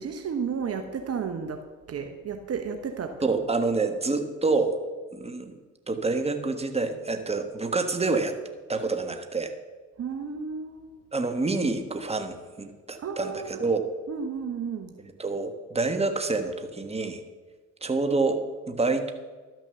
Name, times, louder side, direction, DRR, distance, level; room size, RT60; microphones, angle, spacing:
voice 1, 0.0-3.2 10.0-10.9 13.0-13.7 14.1-14.9, right 6 dB, 50° right, 6 dB, 1.1 m, -33 dB
voice 2, 3.2-4.8 5.1-5.5 5.9-8.4 8.7-9.5 11.1-13.8 15.2-17.2 17.8-18.4 18.7-19.1, right 3 dB, 20° right, 7 dB, 1.4 m, -27 dB
12.0 x 6.1 x 6.9 m, 1.3 s
supercardioid pair, 60°, 32 cm